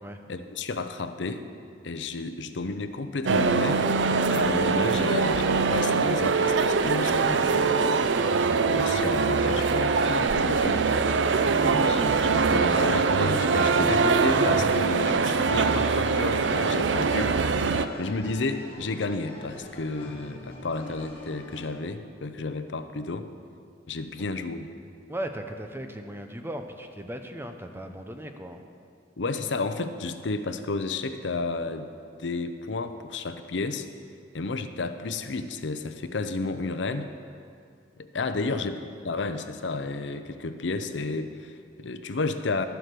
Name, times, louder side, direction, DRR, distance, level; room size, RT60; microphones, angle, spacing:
voice 1, 0.3-1.4 1.8-3.9 4.3-8.0 8.6-10.8 11.6-17.3 18.0-23.3 23.9-24.7 29.2-31.9 32.2-33.9 34.3-37.1 38.0-38.8 39.0-42.6, left 3 dB, 75° left, 9 dB, 0.7 m, -31 dB
sound 1, 3.2-17.9, right 4 dB, 80° right, 0.5 m, -23 dB
sound 2, 13.5-21.7, left 1 dB, 30° left, 2.0 m, -44 dB
voice 2, 25.1-28.6 38.4-38.7, right 1 dB, 15° right, 6 dB, 0.7 m, -37 dB
12.5 x 7.9 x 6.7 m, 2.3 s
head